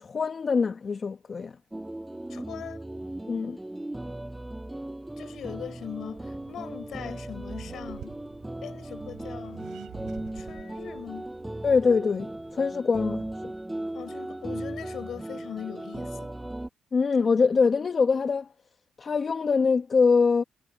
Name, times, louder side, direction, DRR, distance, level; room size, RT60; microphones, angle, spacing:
voice 1, 0.0-1.5 3.3-3.6 11.6-13.2 16.9-18.5 19.0-20.4, left 5 dB, 40° left, 0.9 m, -23 dB
sound 1, 1.7-16.7, right 1 dB, 10° right, 5.8 m, -37 dB
voice 2, 2.3-2.9 5.2-8.2 8.6-9.7 10.3-11.3 13.9-16.3, left 9 dB, 65° left, 4.5 m, -40 dB
Accelerating revving vroom, 5.4-12.7, right 11 dB, 80° right, 3.0 m, -49 dB
cardioid pair, 90°, 0 cm